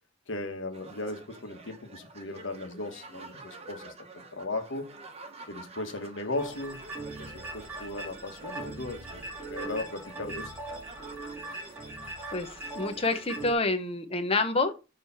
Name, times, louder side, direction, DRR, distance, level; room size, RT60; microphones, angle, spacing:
voice 1, 0.3-4.9 5.5-10.5, left 2 dB, 85° left, 1.3 m, -37 dB
sound 1, 0.7-13.5, right 3 dB, 35° right, 0.9 m, -49 dB
sound 2, 6.4-13.5, right 2 dB, 10° right, 2.3 m, -40 dB
voice 2, 12.3-14.7, left 3 dB, 30° left, 0.8 m, -28 dB
6.9 x 3.2 x 5.5 m
head